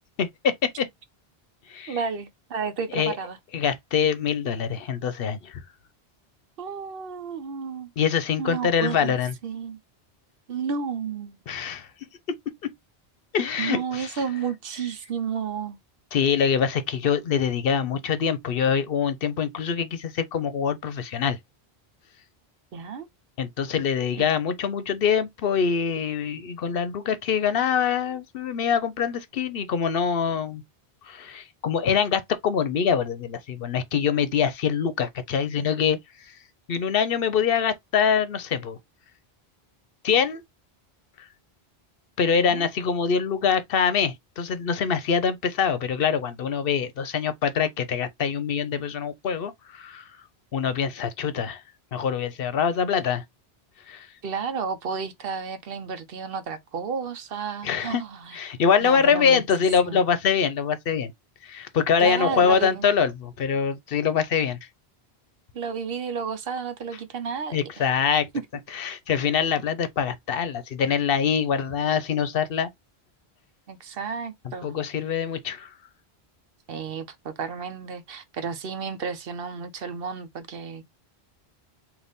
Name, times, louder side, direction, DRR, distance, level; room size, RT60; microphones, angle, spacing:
voice 1, 0.2-0.9 1.7-2.0 2.9-3.1 3.5-5.6 8.0-9.3 11.5-11.9 13.3-14.2 16.1-21.4 23.4-30.6 31.1-36.0 36.7-38.8 40.0-40.4 42.2-50.0 50.5-51.6 51.9-53.2 53.9-54.1 57.6-58.0 58.3-61.1 61.4-64.6 67.5-68.3 68.7-72.7 74.6-75.7, left 7 dB, 65° left, 0.8 m, -24 dB
voice 2, 1.9-3.4 6.6-7.9 8.4-9.1 9.4-9.8 10.5-11.4 13.6-15.8 22.7-23.1 42.3-42.7 54.2-58.4 58.8-59.4 59.8-60.1 62.0-62.9 65.5-67.9 73.7-74.7 76.7-80.8, right 6 dB, 65° right, 0.9 m, -32 dB
4.0 x 2.6 x 3.4 m
omnidirectional pair, 1.1 m